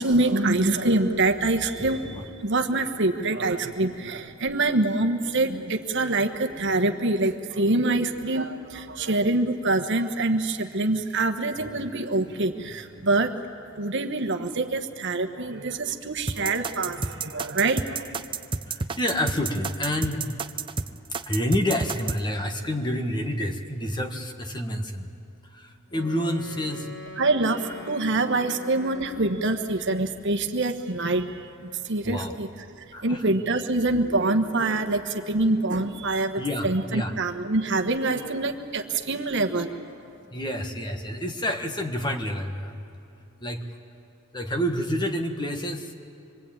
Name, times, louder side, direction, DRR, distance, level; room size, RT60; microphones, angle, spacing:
voice 1, 0.0-13.4 13.8-18.1 27.2-32.5 32.8-39.7, right 2 dB, 55° right, 6 dB, 1.3 m, -25 dB
sound 1, 16.3-22.2, right 4 dB, 25° right, 0.6 m, -30 dB
voice 2, 19.0-20.2 21.3-25.0 25.9-26.8 32.0-32.4 32.9-33.3 36.4-37.1 40.3-42.7 43.4-43.6 44.3-45.9, equal, 20° left, 4 dB, 1.5 m, -28 dB
Wind instrument woodwind instrument, 25.9-30.1, left 3 dB, 55° left, 4.1 m, -43 dB
25.5 x 23.0 x 8.8 m, 2.6 s
head